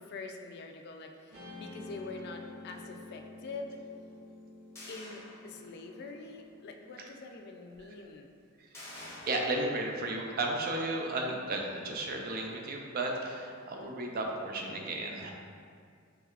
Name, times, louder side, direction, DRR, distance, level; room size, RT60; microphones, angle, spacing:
voice 1, 0.0-3.8 4.9-8.3, left 3 dB, 50° left, 3 dB, 0.3 m, -45 dB
Guitar, 1.3-7.8, left 2 dB, 90° right, 1.2 m, -50 dB
sound 1, 4.7-6.0 6.5-6.6 8.7-9.4, left 1 dB, 15° left, 0.7 m, -48 dB
voice 2, 8.9-15.3, right 2 dB, 45° right, 1 dB, 0.4 m, -34 dB
4.6 x 3.2 x 2.4 m, 2.2 s
head